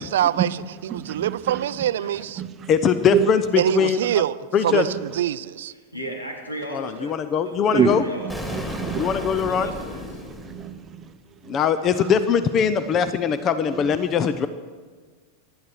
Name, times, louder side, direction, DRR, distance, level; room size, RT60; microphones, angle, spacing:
voice 1, 0.0-2.4 3.6-4.4 4.6-5.7, right 11 dB, 60° right, 0.5 m, -24 dB
voice 2, 0.9-1.6 2.4-2.7 3.1-3.3 4.1-4.2 4.9-5.0 7.7-9.5 10.2-11.1 11.4-11.6 12.0-12.2 13.7-13.8, right 9 dB, 25° right, 0.8 m, -27 dB
voice 3, 2.7-3.4 3.7-4.0 4.5-4.8 6.7-8.0 8.9-9.7 11.5-14.5, left 7 dB, 30° left, 0.7 m, -21 dB
voice 4, 5.9-7.1 7.4-8.7 9.5-10.1, right 1 dB, 80° left, 3.4 m, -36 dB
Explosion, 8.3-11.2, left 1 dB, 10° left, 3.0 m, -34 dB
24.5 x 12.0 x 4.7 m
figure-of-eight pair, 90°, 0 cm